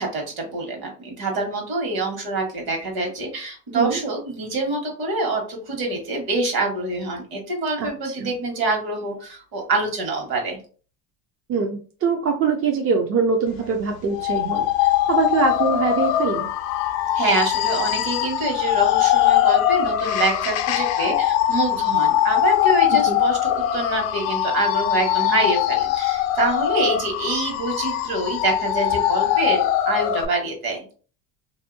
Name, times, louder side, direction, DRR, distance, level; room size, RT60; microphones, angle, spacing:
voice 1, 0.0-10.6 17.1-30.8, right 2 dB, 50° right, 2 dB, 1.4 m, -26 dB
voice 2, 11.5-16.5 23.1-23.2, right 5 dB, 30° right, 3 dB, 0.4 m, -23 dB
sound 1, 14.1-30.3, left 12 dB, 85° left, 0.6 m, -21 dB
2.7 x 2.6 x 2.6 m, 0.39 s
supercardioid pair, 105°, 45 cm